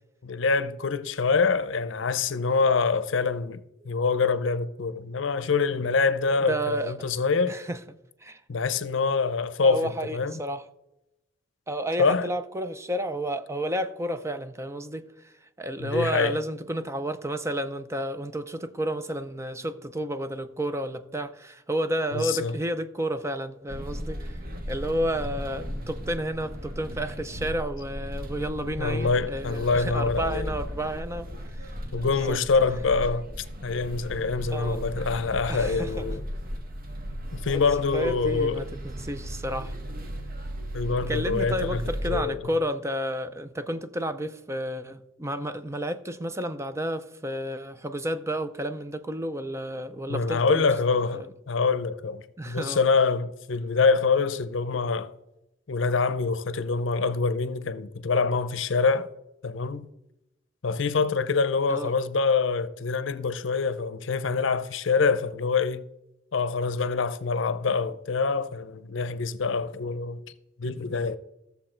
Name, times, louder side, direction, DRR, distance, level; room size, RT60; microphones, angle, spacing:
voice 1, 0.2-7.6 8.5-10.4 12.0-12.3 15.8-16.4 22.1-22.5 28.8-30.5 31.9-33.2 33.6-36.2 37.3-38.7 40.7-41.8 42.1-42.4 50.1-55.1 55.7-59.1 59.4-59.9 60.6-65.8 66.3-70.2 70.6-71.2, left 4 dB, 70° left, 0.6 m, -25 dB
voice 2, 6.3-6.9 7.5-7.8 8.2-8.4 9.6-10.6 11.7-24.4 24.7-31.7 32.1-32.4 34.5-34.8 35.5-36.1 37.5-39.7 41.1-50.7 51.1-51.3 52.4-52.8 61.7-61.9, right 1 dB, 15° right, 0.5 m, -31 dB
sound 1, 23.7-42.2, equal, 50° right, 1.5 m, -36 dB
14.0 x 7.0 x 4.4 m
head